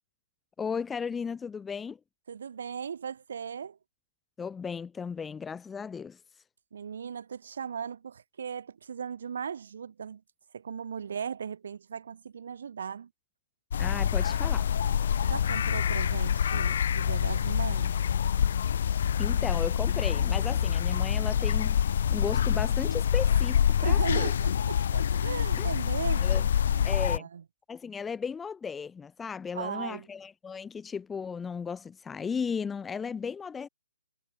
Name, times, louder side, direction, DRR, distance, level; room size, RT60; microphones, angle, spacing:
voice 1, 0.6-2.0 4.4-6.2 13.8-14.7 19.2-24.3 25.6-25.7 26.2-26.4 26.8-27.3 27.7-33.7, left 6 dB, 5° left, 0.3 m, -35 dB
voice 2, 2.3-3.8 6.7-10.2 10.5-13.1 15.2-18.0 23.8-27.4 29.5-30.1, right 7 dB, 60° right, 2.3 m, -38 dB
sound 1, 13.7-27.2, left 8 dB, 50° left, 0.8 m, -26 dB
hypercardioid pair, 165°, 0 cm